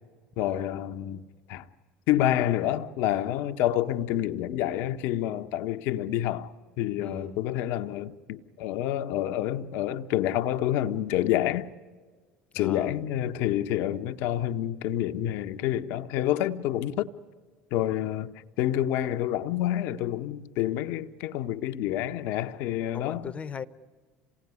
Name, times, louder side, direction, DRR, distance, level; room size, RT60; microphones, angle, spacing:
voice 1, 0.4-1.2 1.5-1.7 2.1-6.5 6.8-11.7 12.5-17.1 17.7-18.3 18.6-23.3, left 12 dB, 65° left, 1.0 m, -28 dB
voice 2, 7.0-7.4 12.5-13.0 22.9-23.6, left 6 dB, 30° left, 1.1 m, -39 dB
27.5 x 18.0 x 9.7 m
hypercardioid pair, 70°, 4 cm